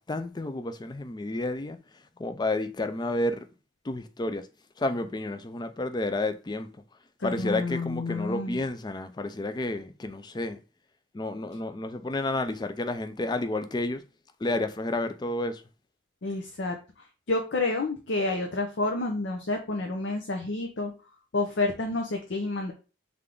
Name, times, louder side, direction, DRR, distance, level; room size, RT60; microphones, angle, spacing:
voice 1, 0.0-1.8 2.2-3.4 3.8-4.5 4.8-6.7 7.2-10.6 11.1-14.0 14.4-15.6, left 2 dB, 20° left, 0.4 m, -30 dB
voice 2, 7.2-8.6 16.2-20.9 21.3-22.7, left 2 dB, 70° left, 0.7 m, -29 dB
3.6 x 3.3 x 3.7 m
head